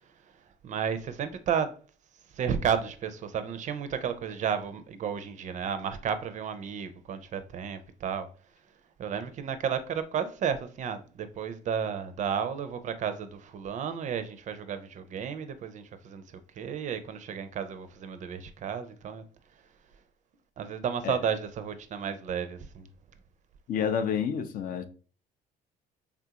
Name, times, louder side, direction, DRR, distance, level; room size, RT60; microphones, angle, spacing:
voice 1, 0.6-1.7 2.3-8.3 9.0-19.2 20.6-22.9, right 7 dB, 45° right, 0.4 m, -32 dB
voice 2, 23.7-24.9, left 7 dB, 55° left, 0.4 m, -29 dB
3.4 x 2.4 x 2.8 m
cardioid pair, 110°, 17 cm